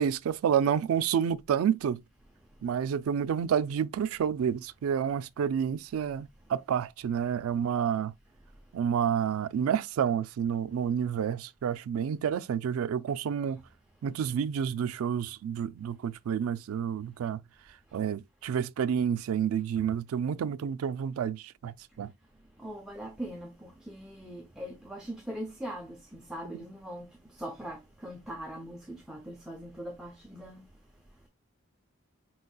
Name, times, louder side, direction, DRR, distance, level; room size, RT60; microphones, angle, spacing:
voice 1, 0.0-2.0 2.6-8.1 8.7-13.6 14.0-17.4 17.9-22.1, right 8 dB, 85° right, 0.3 m, -29 dB
voice 2, 22.6-30.7, right 1 dB, 5° right, 0.5 m, -41 dB
4.4 x 3.9 x 2.3 m
head